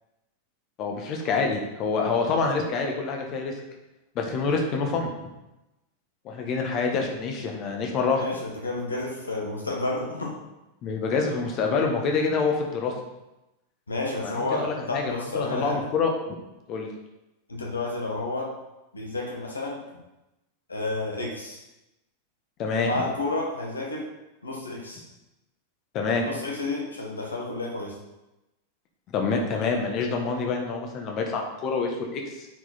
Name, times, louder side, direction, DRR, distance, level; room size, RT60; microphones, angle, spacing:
voice 1, 0.8-3.5 4.1-5.1 6.2-8.2 10.8-12.9 14.2-16.3 16.7-16.9 22.6-23.0 25.9-26.2 29.1-32.5, left 4 dB, 35° left, 2 dB, 1.4 m, -26 dB
voice 2, 8.2-10.4 13.9-15.8 17.5-18.5 18.9-19.8 20.7-21.6 22.8-24.1 24.4-25.0 26.1-28.0, left 2 dB, 75° left, -1 dB, 1.6 m, -31 dB
9.0 x 4.8 x 4.2 m, 0.97 s
figure-of-eight pair, 90°, 0 cm